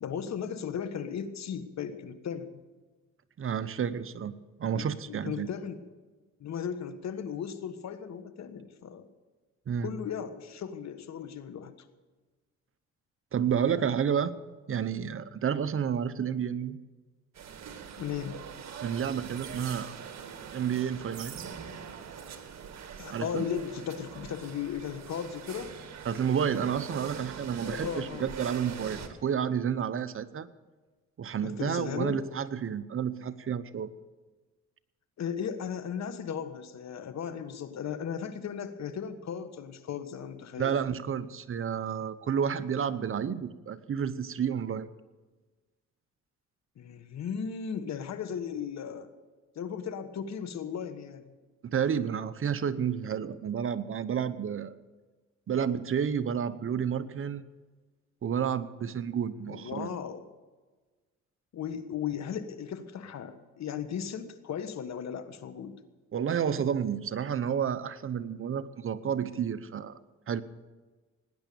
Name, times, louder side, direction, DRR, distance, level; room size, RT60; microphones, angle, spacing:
voice 1, 0.0-2.6 4.7-5.8 6.4-9.1 9.8-11.7 18.0-18.4 23.0-25.7 27.6-28.4 31.4-32.2 35.2-40.8 46.8-49.1 49.5-51.3 59.5-60.2 61.5-65.8, left 7 dB, 60° left, 10 dB, 1.5 m, -36 dB
voice 2, 3.4-4.3 4.6-5.5 9.7-9.9 13.3-14.3 14.7-16.8 18.8-19.9 20.5-21.3 23.1-23.4 26.0-30.5 31.2-33.9 40.6-44.9 51.6-54.7 55.5-57.4 58.2-59.9 66.1-70.0 70.3-70.4, right 8 dB, 45° right, 13 dB, 0.8 m, -30 dB
sound 1, 17.3-29.1, right 7 dB, 60° right, 1.9 m, -43 dB
18.5 x 10.0 x 6.9 m, 1.3 s
cardioid pair, 90°, 30 cm